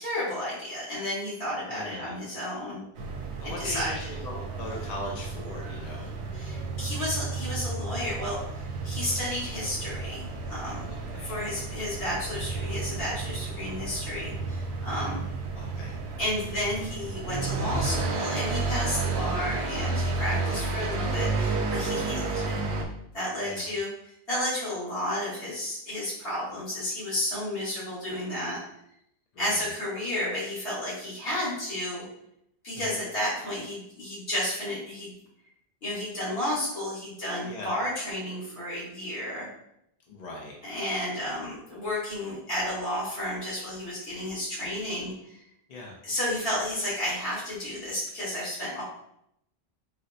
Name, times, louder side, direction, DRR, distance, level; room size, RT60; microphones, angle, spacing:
voice 1, 0.0-2.9 3.4-3.9 6.3-10.9 11.2-15.2 16.2-22.6 23.1-28.6 29.4-32.1 32.6-35.1 35.8-39.5 40.6-45.4 46.0-48.8, left 1 dB, 65° left, -8 dB, 1.6 m, -32 dB
voice 2, 1.7-2.2 3.4-6.1 11.1-11.3 15.6-16.0 20.4-20.7 23.4-23.6 29.3-29.7 32.8-33.0 37.5-37.7 40.1-40.5 45.7-45.9, left 2 dB, 45° left, -2 dB, 0.6 m, -39 dB
sound 1, 3.0-22.8, right 3 dB, 80° right, 0.8 m, -32 dB
4.1 x 2.0 x 2.6 m, 0.77 s
omnidirectional pair, 1.1 m